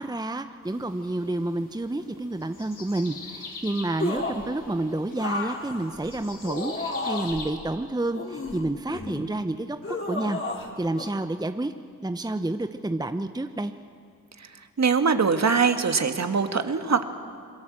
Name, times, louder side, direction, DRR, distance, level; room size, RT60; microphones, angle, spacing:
voice 1, 0.0-10.4 10.8-11.7 12.0-13.7, right 2 dB, 10° right, 8 dB, 1.0 m, -29 dB
sound 1, 0.6-7.5, left 3 dB, 55° left, 5.5 m, -44 dB
sound 2, 4.0-4.5 5.2-7.5 8.1-9.2 9.8-10.7 11.0-11.1, left 3 dB, 35° left, 4.5 m, -32 dB
voice 2, 14.8-17.0, right 5 dB, 45° right, 7 dB, 2.0 m, -22 dB
27.0 x 22.0 x 7.6 m, 2.3 s
supercardioid pair, 45°, 39 cm